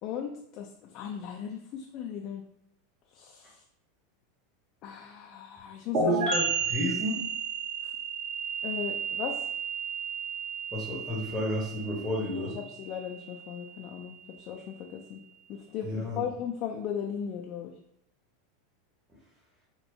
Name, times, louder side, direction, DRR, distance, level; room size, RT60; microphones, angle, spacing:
voice 1, 0.0-2.4 3.1-3.6 4.8-6.3 7.8-7.9 8.6-9.5 12.2-15.2 15.5-17.8, left 8 dB, 50° left, 1 dB, 0.4 m, -37 dB
sound 1, 5.9-13.5, right 4 dB, 45° right, 1.5 m, -32 dB
voice 2, 6.0-7.2 10.7-12.6 15.8-16.2, left 1 dB, 10° right, -8 dB, 1.1 m, -32 dB
4.3 x 2.2 x 2.7 m, 0.74 s
hypercardioid pair, 95°, 0 cm